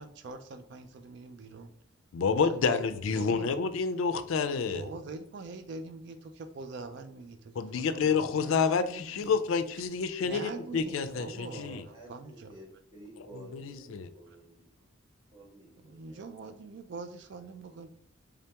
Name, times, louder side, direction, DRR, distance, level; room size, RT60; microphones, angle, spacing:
voice 1, 0.0-1.7 2.5-3.5 4.7-9.4 10.2-12.5 14.3-14.4 15.8-17.9, right 3 dB, 60° right, 8 dB, 0.3 m, -44 dB
voice 2, 2.1-4.8 7.6-11.8 13.5-14.1, left 5 dB, 85° left, 11 dB, 0.4 m, -29 dB
voice 3, 10.4-14.9 15.3-16.2, right 1 dB, 20° right, -4 dB, 1.3 m, -51 dB
3.6 x 3.3 x 2.8 m, 0.73 s
head